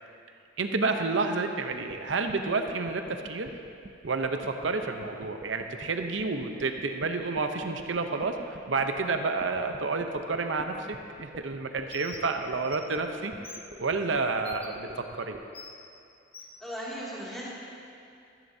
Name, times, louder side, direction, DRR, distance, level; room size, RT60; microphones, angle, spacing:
voice 1, 0.6-3.5 4.0-15.4, right 3 dB, 85° right, 5 dB, 0.8 m, -30 dB
sound 1, 1.7-15.4, right 2 dB, 35° right, 0.6 m, -47 dB
Bird, 11.9-12.2 12.6-12.8 13.4-13.6 14.4-14.7 15.5-15.7 16.3-16.5, left 4 dB, 30° left, 1.1 m, -44 dB
voice 2, 16.6-17.5, equal, ahead, -8 dB, 2.5 m, -37 dB
14.0 x 14.0 x 2.8 m, 2.5 s
head